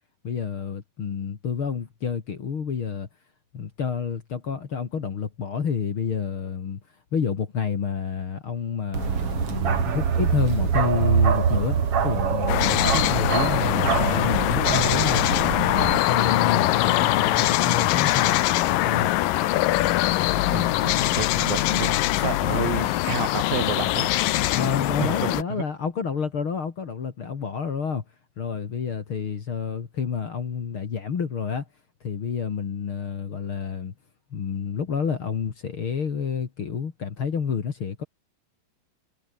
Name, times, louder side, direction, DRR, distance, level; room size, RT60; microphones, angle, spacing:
voice 1, 0.2-3.1 3.5-6.8 7.1-15.2 15.7-18.4 18.7-19.1 24.5-28.0 28.4-31.7 32.0-33.9 34.3-38.0, left 6 dB, 40° left, 2.5 m, -29 dB
Bark, 8.9-16.0, right 7 dB, 45° right, 2.9 m, -24 dB
sound 1, 12.5-25.4, left 16 dB, 75° left, 2.5 m, -22 dB
voice 2, 20.5-24.1 25.0-25.6, right 7 dB, 80° right, 5.2 m, -31 dB
omnidirectional pair, 4.0 m